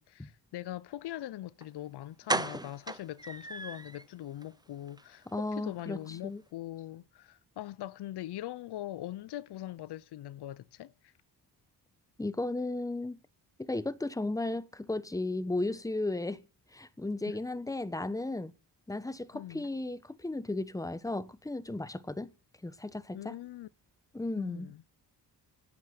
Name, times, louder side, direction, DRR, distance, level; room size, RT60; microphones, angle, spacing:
voice 1, 0.0-11.1 17.3-17.4 19.3-19.7 23.1-23.7 24.4-24.8, left 13 dB, 75° left, 0.8 m, -42 dB
sound 1, 1.6-1.7 2.3-4.0 4.4-4.5 4.9-5.0 5.3-5.4, right 2 dB, 10° right, 0.9 m, -35 dB
voice 2, 5.3-6.0 6.2-6.4 12.2-13.2 13.6-16.4 16.7-18.5 18.9-22.3 22.6-23.4 24.1-24.7, left 2 dB, 10° left, 1.2 m, -35 dB
17.0 x 9.4 x 7.8 m
cardioid pair, 95°, 40 cm